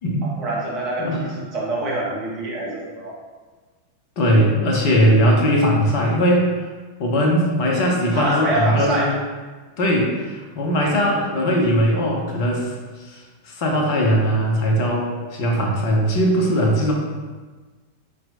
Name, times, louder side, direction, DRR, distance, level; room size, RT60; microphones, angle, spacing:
voice 1, 0.2-3.2 8.1-9.2, right 2 dB, 35° right, -3 dB, 1.1 m, -25 dB
voice 2, 4.2-6.5 7.0-9.2 9.8-12.7 13.0-16.9, equal, 45° left, 0 dB, 0.8 m, -19 dB
4.4 x 3.2 x 2.6 m, 1.3 s
figure-of-eight pair, 90°, 0 cm